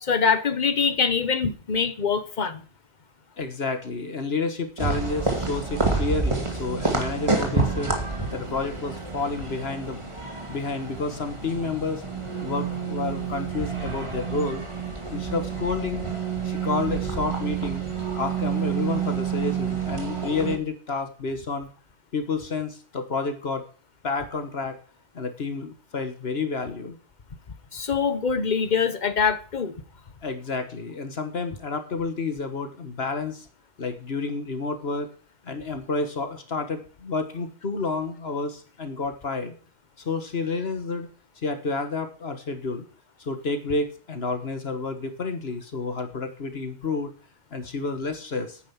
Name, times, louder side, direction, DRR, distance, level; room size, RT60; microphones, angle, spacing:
voice 1, 0.0-2.6 27.7-29.7, left 5 dB, 45° left, 1.2 m, -24 dB
voice 2, 3.4-8.0 8.3-12.0 12.4-14.6 15.1-16.0 16.4-17.9 18.1-21.7 22.1-23.6 24.0-24.8 25.1-27.0 30.2-33.5 33.8-35.1 35.4-39.5 40.0-41.1 41.4-42.8 43.2-47.1 47.5-48.6, left 3 dB, 65° left, 1.6 m, -30 dB
sound 1, 4.8-20.6, right 4 dB, 25° right, 2.4 m, -28 dB
9.6 x 9.3 x 7.2 m
omnidirectional pair, 1.1 m